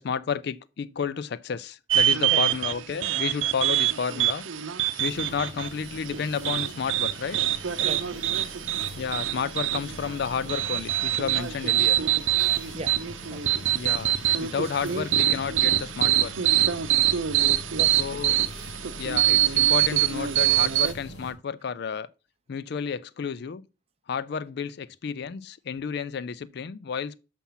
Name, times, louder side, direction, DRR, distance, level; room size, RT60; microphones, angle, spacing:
voice 1, 0.0-4.5 5.0-7.4 9.0-12.0 13.7-16.3 18.0-18.4 19.0-22.1 22.5-23.7 24.1-27.2, left 6 dB, 55° left, 0.4 m, -31 dB
sound 1, 1.9-20.9, right 12 dB, 80° right, 0.7 m, -25 dB
sound 2, 5.0-21.3, left 1 dB, 80° left, 2.8 m, -43 dB
voice 2, 7.8-8.2 12.7-13.4 14.5-14.6 14.8-15.0 17.7-18.3 18.5-19.1, right 2 dB, 30° right, 1.0 m, -39 dB
6.9 x 5.8 x 5.6 m
head